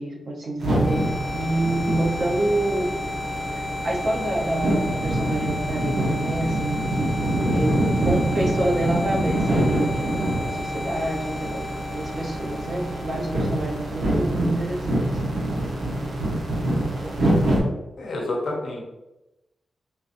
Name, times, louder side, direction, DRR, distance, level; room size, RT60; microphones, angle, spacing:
voice 1, 0.0-2.9 3.5-6.8 7.5-11.7 11.9-15.1, right 1 dB, 55° right, -2 dB, 0.7 m, -27 dB
sound 1, 0.6-14.6, left 3 dB, 10° left, 0.4 m, -34 dB
sound 2, 0.6-17.6, right 1 dB, 80° right, 1.0 m, -25 dB
voice 2, 18.0-18.8, left 2 dB, 70° left, -1 dB, 0.8 m, -28 dB
3.8 x 2.7 x 2.6 m, 0.97 s
wide cardioid pair, 165°, 0 cm